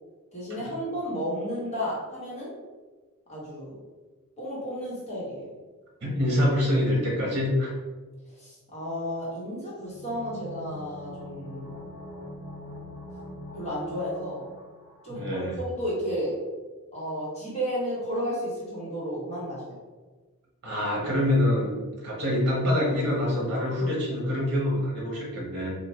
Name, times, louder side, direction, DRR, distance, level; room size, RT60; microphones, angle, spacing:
voice 1, 0.3-2.5 3.3-3.7 4.4-5.4 8.3-11.7 13.5-14.4 15.0-16.3 16.9-19.8, equal, 30° left, -7 dB, 1.1 m, -32 dB
voice 2, 6.0-7.7 15.1-15.6 20.6-21.7 22.0-25.7, left 1 dB, 50° right, -2 dB, 1.0 m, -25 dB
sound 1, 9.8-15.5 15.8-15.9, left 1 dB, 20° right, 0.8 m, -43 dB
4.4 x 2.2 x 3.0 m, 1.3 s
head